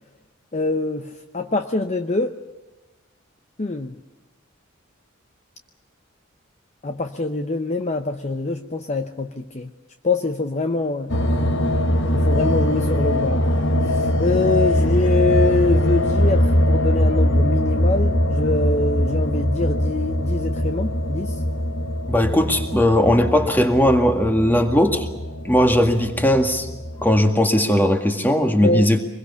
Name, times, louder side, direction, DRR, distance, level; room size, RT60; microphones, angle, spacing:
voice 1, 0.5-2.3 3.6-3.9 6.8-9.7 10.0-11.2 12.1-13.5 13.9-21.4 28.6-28.9, left 3 dB, 35° left, 7 dB, 0.8 m, -24 dB
sound 1, 11.1-27.2, equal, 60° left, 1.3 m, -21 dB
voice 2, 22.1-25.1 25.5-26.7 27.0-29.0, left 1 dB, 10° left, 5 dB, 2.0 m, -18 dB
25.0 x 21.5 x 7.0 m, 1.1 s
head